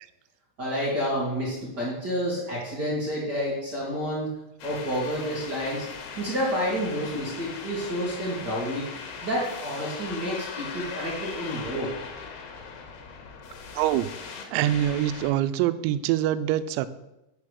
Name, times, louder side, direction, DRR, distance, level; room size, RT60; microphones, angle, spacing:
voice 1, 0.6-4.3 4.6-5.9 6.2-8.9 9.2-11.9, equal, 60° right, -6 dB, 1.0 m, -29 dB
sound 1, 4.6-15.3, left 5 dB, 70° left, 2.8 m, -39 dB
voice 2, 13.8-14.1 14.5-16.9, right 12 dB, 90° right, 13 dB, 3.3 m, -24 dB
8.7 x 6.7 x 6.4 m, 0.91 s
omnidirectional pair, 6.0 m